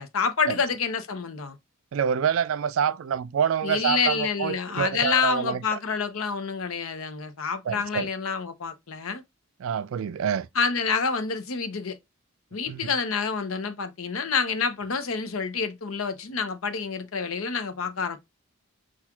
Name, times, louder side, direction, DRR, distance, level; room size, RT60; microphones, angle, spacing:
voice 1, 0.0-1.6 3.6-9.2 10.5-12.0 12.5-18.2, left 5 dB, 80° left, 0.7 m, -28 dB
voice 2, 1.9-5.6 7.7-8.1 9.6-10.5 12.7-12.9, right 8 dB, 70° right, 0.3 m, -26 dB
5.8 x 2.4 x 2.3 m
head